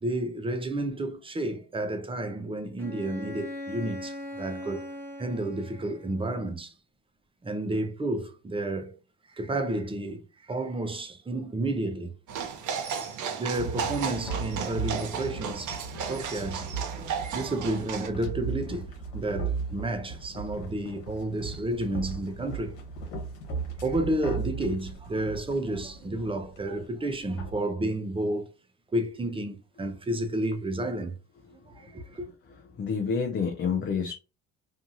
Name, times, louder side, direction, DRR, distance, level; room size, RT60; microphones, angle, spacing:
voice 1, 0.0-4.9 5.2-6.7 7.4-9.0 9.3-12.1 13.4-15.7 16.1-16.7 17.3-18.9 19.1-22.8 23.8-28.5 28.9-31.2 31.5-32.3, right 1 dB, 15° right, 0.7 m, -31 dB
Bowed string instrument, 2.8-6.3, left 1 dB, 5° left, 1.1 m, -40 dB
sound 1, 12.3-18.1, right 7 dB, 55° right, 0.8 m, -34 dB
sound 2, 13.5-27.6, right 4 dB, 90° left, 1.1 m, -37 dB
voice 2, 31.9-32.2 32.7-34.1, left 6 dB, 30° left, 0.6 m, -29 dB
2.7 x 2.4 x 2.6 m
supercardioid pair, 70°, 36 cm